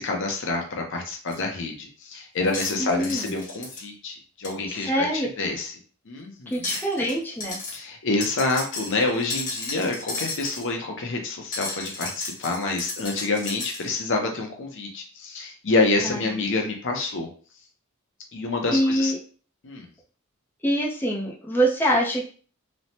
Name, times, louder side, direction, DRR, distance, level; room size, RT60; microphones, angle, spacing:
voice 1, 0.0-5.7 6.1-6.7 7.7-17.3 18.3-19.1 19.6-19.9, left 3 dB, 60° left, 2 dB, 0.6 m, -27 dB
sound 1, 1.3-1.4 2.5-3.8 4.4-4.5 6.5-7.2 7.4-7.8 8.2-10.7 11.5-13.9, left 3 dB, 40° left, 1.1 m, -34 dB
voice 2, 2.8-3.3 4.7-5.3 6.5-7.6 16.0-16.4 18.7-19.2 20.6-22.3, equal, 10° left, -4 dB, 0.5 m, -24 dB
3.1 x 2.0 x 2.7 m, 0.40 s
head